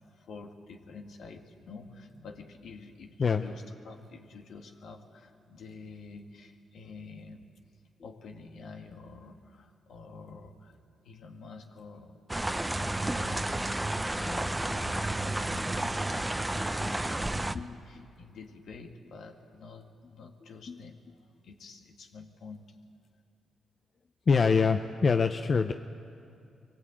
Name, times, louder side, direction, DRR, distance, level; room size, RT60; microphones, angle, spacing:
voice 1, 0.1-7.5 8.0-10.8 11.0-12.3 12.7-13.6 13.9-16.3 16.7-22.8, left 4 dB, 75° left, 4 dB, 2.0 m, -48 dB
sound 1, 12.3-17.5, right 1 dB, 10° right, 0.7 m, -31 dB
voice 2, 24.3-25.7, left 5 dB, 45° left, 8 dB, 0.7 m, -25 dB
23.0 x 18.0 x 8.8 m, 2.6 s
cardioid pair, 80°, 0 cm